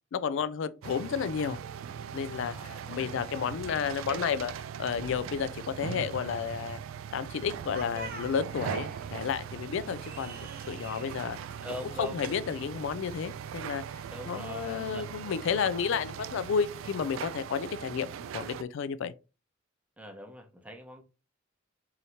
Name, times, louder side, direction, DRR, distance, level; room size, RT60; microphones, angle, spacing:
voice 1, 0.1-1.6 2.1-4.5 4.8-6.8 7.1-11.4 12.0-13.8 14.3-18.1 18.3-19.1, left 6 dB, 65° left, 0.3 m, -32 dB
sound 1, 0.8-18.6, right 8 dB, 75° right, 0.3 m, -40 dB
voice 2, 2.3-3.2 3.6-4.3 11.6-12.2 14.1-15.3 20.0-21.0, left 1 dB, 5° right, 0.7 m, -43 dB
sound 2, 7.7-14.8, right 3 dB, 50° right, 0.7 m, -48 dB
4.9 x 2.8 x 2.8 m
head